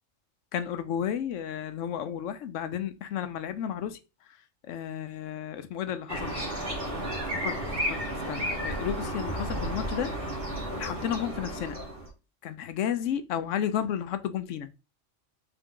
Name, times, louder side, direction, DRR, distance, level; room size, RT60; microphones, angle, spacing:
voice 1, 0.5-4.0 4.6-6.3 7.3-7.6 7.9-8.0 8.3-10.1 10.8-11.8 12.4-14.7, left 9 dB, 85° left, 0.9 m, -32 dB
sound 1, 6.1-12.1, right 1 dB, 50° right, 1.6 m, -33 dB
3.8 x 3.5 x 3.6 m
omnidirectional pair, 1.3 m